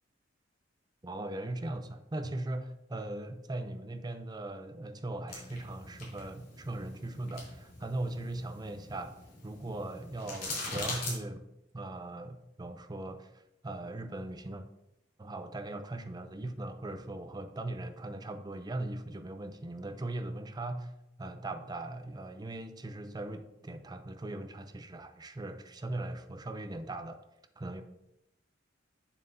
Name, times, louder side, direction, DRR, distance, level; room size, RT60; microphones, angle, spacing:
voice 1, 1.0-9.2 9.4-11.5 11.7-14.7 15.2-20.9 21.2-27.2 27.6-27.8, right 2 dB, 20° right, 8 dB, 0.5 m, -39 dB
sound 1, 5.3-11.1, left 2 dB, 55° left, 3.0 m, -42 dB
8.7 x 7.2 x 2.7 m, 0.87 s
head